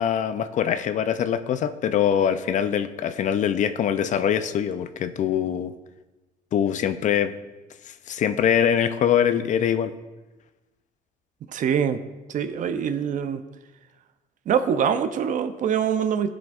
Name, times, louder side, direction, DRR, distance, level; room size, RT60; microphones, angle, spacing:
voice 1, 0.0-5.7 6.5-7.3 8.1-9.9, left 9 dB, 45° left, 11 dB, 0.4 m, -23 dB
voice 2, 11.5-12.0 12.3-13.4 14.5-16.3, right 7 dB, 50° right, 11 dB, 0.5 m, -24 dB
13.0 x 5.1 x 2.4 m, 1.1 s
cardioid pair, 110°, 17 cm